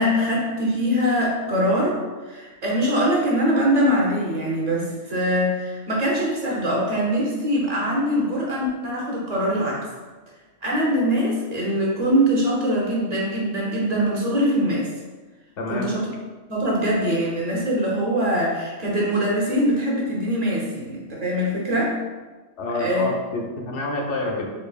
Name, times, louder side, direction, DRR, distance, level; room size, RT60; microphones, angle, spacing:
voice 1, 0.0-9.9 10.6-14.9 15.7-16.1 16.5-22.0 22.7-23.1, equal, 35° right, -4 dB, 0.8 m, -23 dB
voice 2, 15.6-15.9 22.6-24.5, left 2 dB, 75° left, 0 dB, 1.0 m, -28 dB
4.5 x 2.6 x 2.4 m, 1.3 s
omnidirectional pair, 1.2 m